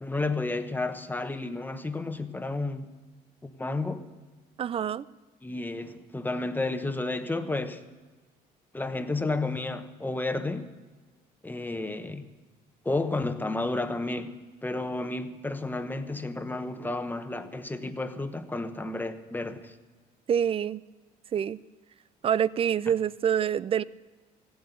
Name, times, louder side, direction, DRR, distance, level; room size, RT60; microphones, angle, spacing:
voice 1, 0.0-2.9 3.4-4.1 5.4-7.9 8.7-10.7 11.4-12.3 12.8-19.7, left 2 dB, 10° left, 1.0 m, -32 dB
voice 2, 4.6-5.1 20.3-20.8 21.3-21.6 22.2-23.8, right 9 dB, 35° right, 0.4 m, -26 dB
16.0 x 7.9 x 9.2 m
cardioid pair, 110°, 17 cm